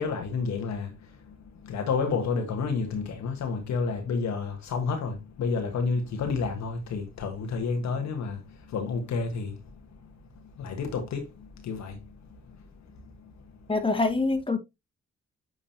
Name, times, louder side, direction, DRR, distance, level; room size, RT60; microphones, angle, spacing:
voice 1, 0.0-1.3 1.6-9.6 10.6-12.0 12.5-12.6, left 4 dB, 65° left, 1.4 m, -30 dB
voice 2, 13.7-14.6, left 3 dB, 15° left, 1.7 m, -25 dB
9.0 x 3.9 x 2.7 m
hypercardioid pair, 40°, 30 cm